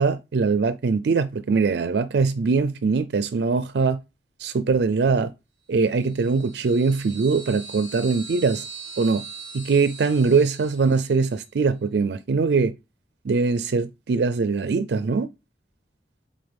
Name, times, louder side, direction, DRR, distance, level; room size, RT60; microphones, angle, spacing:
voice 1, 0.0-4.0 4.4-5.3 5.7-8.7 9.0-9.2 9.5-12.7 13.2-15.3, right 4 dB, 65° right, 0.4 m, -22 dB
sound 1, 5.9-11.4, right 4 dB, 35° left, 3.6 m, -41 dB
7.9 x 3.8 x 3.3 m
head